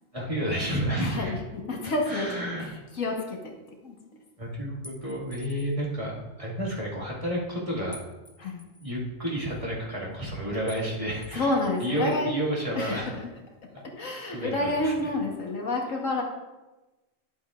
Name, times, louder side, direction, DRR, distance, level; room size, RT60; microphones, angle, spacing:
voice 1, 0.1-1.3 2.1-2.6 4.4-8.0 8.8-13.1 14.2-14.9, right 1 dB, 25° right, -5 dB, 1.9 m, -31 dB
voice 2, 1.0-2.3 3.0-3.5 3.8-3.9 8.4-8.6 11.3-12.4 12.8-13.2 14.0-16.2, left 2 dB, 75° left, 1 dB, 1.6 m, -29 dB
sound 1, 4.8-5.8 7.9-8.9 10.7-10.9 11.2-12.2, equal, 10° left, 0.9 m, -49 dB
11.0 x 7.9 x 2.4 m, 1.1 s
omnidirectional pair, 1.4 m